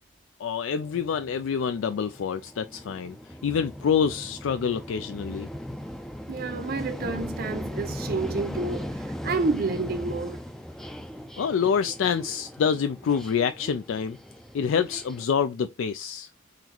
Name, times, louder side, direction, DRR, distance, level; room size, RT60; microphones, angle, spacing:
voice 1, 0.4-3.2 3.4-5.5 11.4-14.2 14.5-16.3, left 7 dB, 80° left, 0.4 m, -26 dB
sound 1, 0.8-15.3, equal, ahead, 0.4 m, -38 dB
voice 2, 6.3-10.4, right 3 dB, 50° right, 0.7 m, -29 dB
4.0 x 3.0 x 4.3 m
head